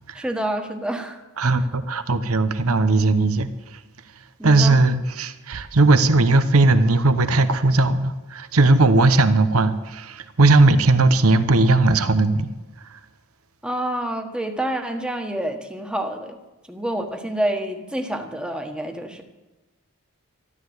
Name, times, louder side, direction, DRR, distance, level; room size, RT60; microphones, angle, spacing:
voice 1, 0.1-1.2 4.4-4.8 13.6-16.4 16.7-19.2, right 1 dB, 5° right, 1.4 m, -27 dB
voice 2, 1.4-3.5 4.4-12.5, right 2 dB, 80° right, 1.0 m, -18 dB
13.5 x 12.0 x 8.1 m
head